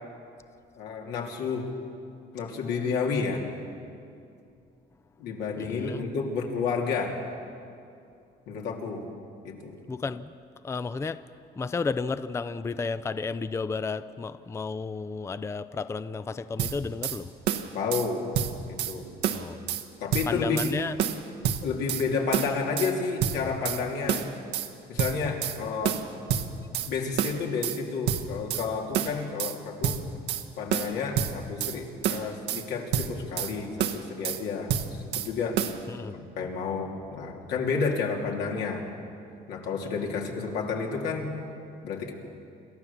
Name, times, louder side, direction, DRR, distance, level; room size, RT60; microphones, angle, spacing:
voice 1, 0.8-1.7 2.3-3.4 5.2-7.2 8.5-9.1 9.4-9.7 17.7-18.2 18.7-19.1 20.0-20.7 21.6-24.2 24.9-26.0 26.4-26.5 26.9-30.0 30.6-35.6 36.1-38.8 39.5-41.3 41.8-42.1, left 5 dB, 85° left, 3.1 m, -30 dB
voice 2, 5.6-6.0 9.9-10.3 10.6-11.2 11.6-17.3 19.3-19.6 20.3-20.9 35.9-36.2, left 4 dB, 15° left, 0.5 m, -32 dB
sound 1, 16.6-17.2 17.5-18.1 18.3-18.9 19.2-19.8 20.1-20.7 21.0-22.0 22.3-22.9 23.2-23.8 24.1-24.7 25.0-25.6 25.8-26.9 27.2-27.8 28.1-28.7 28.9-29.6 29.8-30.4 30.7-31.8 32.0-32.6 32.9-33.5 33.8-34.4 34.7-35.3 35.6-35.8, right 9 dB, 85° right, 1.3 m, -28 dB
28.0 x 13.5 x 7.2 m
cardioid pair, 110°, 17 cm